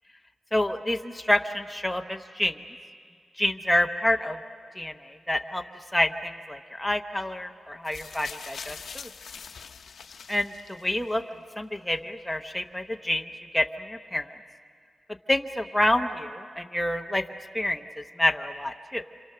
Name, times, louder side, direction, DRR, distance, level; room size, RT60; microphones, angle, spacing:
voice 1, 0.5-2.6 3.4-4.4 4.7-5.6 5.9-9.1 10.3-11.2 11.6-13.2 13.5-14.4 15.3-17.2 17.5-19.0, left 1 dB, 5° left, 4 dB, 0.7 m, -28 dB
sound 1, 7.8-11.1 12.0-12.1, left 6 dB, 70° left, 0.8 m, -43 dB
27.5 x 27.0 x 6.7 m, 2.1 s
wide cardioid pair, 135°, 0 cm